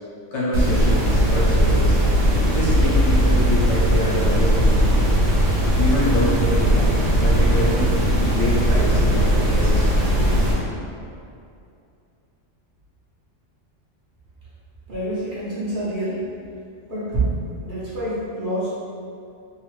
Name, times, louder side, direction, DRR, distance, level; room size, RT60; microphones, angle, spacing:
voice 1, 0.3-2.0 2.5-5.2 5.8-7.9 8.2-10.3, equal, 70° left, -7 dB, 1.1 m, -26 dB
sound 1, 0.5-10.5, equal, 80° right, 1.0 m, -18 dB
voice 2, 14.9-16.3 16.9-17.2 17.6-18.7, right 1 dB, 50° right, -10 dB, 0.8 m, -27 dB
2.7 x 2.5 x 3.1 m, 2.5 s
omnidirectional pair, 1.3 m